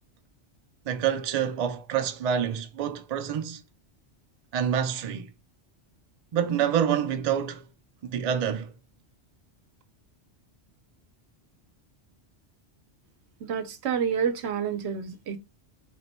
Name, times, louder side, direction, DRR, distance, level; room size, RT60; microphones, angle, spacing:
voice 1, 0.9-3.6 4.5-5.3 6.3-7.6 8.0-8.7, right 8 dB, 55° right, 0.4 m, -27 dB
voice 2, 13.4-15.4, right 7 dB, 75° right, 0.9 m, -28 dB
3.6 x 2.2 x 4.1 m
omnidirectional pair, 1.1 m